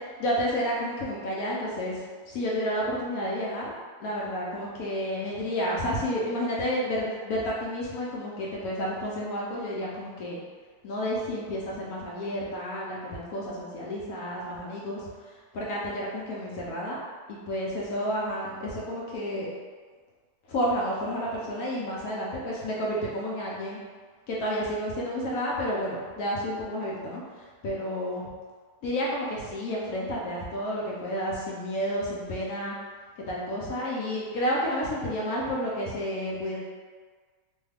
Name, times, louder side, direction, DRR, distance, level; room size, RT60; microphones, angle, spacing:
voice 1, 0.2-2.0 2.3-3.7 4.0-10.4 10.8-15.0 15.5-17.0 17.3-19.5 20.5-23.8 24.3-28.3 28.8-32.8 33.2-36.6, equal, 70° left, -5 dB, 0.9 m, -30 dB
3.1 x 2.3 x 3.3 m, 1.5 s
omnidirectional pair, 2.1 m